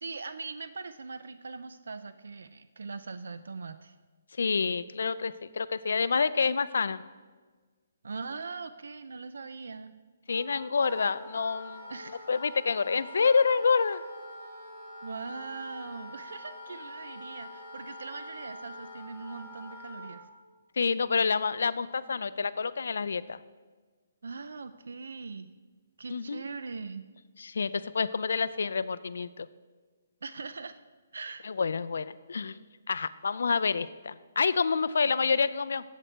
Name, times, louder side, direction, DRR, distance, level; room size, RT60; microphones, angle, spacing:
voice 1, 0.0-3.9 8.0-9.9 11.9-12.3 15.0-20.2 24.2-25.5 26.0-27.1 30.2-30.8 31.1-31.5, right 4 dB, 85° right, 12 dB, 0.4 m, -41 dB
voice 2, 4.4-7.0 10.3-11.9 12.3-14.0 20.8-23.4 26.1-26.4 27.4-29.5 31.4-32.6 32.9-35.8, left 5 dB, 65° left, 16 dB, 0.3 m, -28 dB
Wind instrument woodwind instrument, 10.3-20.2, left 1 dB, 20° right, 2.4 m, -45 dB
7.9 x 7.5 x 4.5 m, 1.4 s
hypercardioid pair, 180°, 0 cm